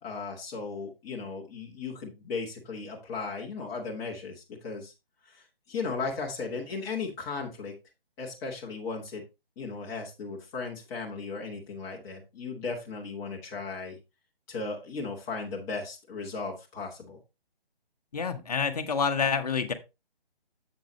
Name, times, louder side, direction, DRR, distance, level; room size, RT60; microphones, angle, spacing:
voice 1, 0.0-4.9 5.2-7.7 8.2-9.2 9.6-14.0 14.5-17.2, left 4 dB, 10° left, -2 dB, 1.1 m, -36 dB
voice 2, 18.1-19.7, left 5 dB, 40° left, 8 dB, 1.0 m, -27 dB
7.6 x 7.4 x 3.0 m, 0.25 s
figure-of-eight pair, 145°, 30 cm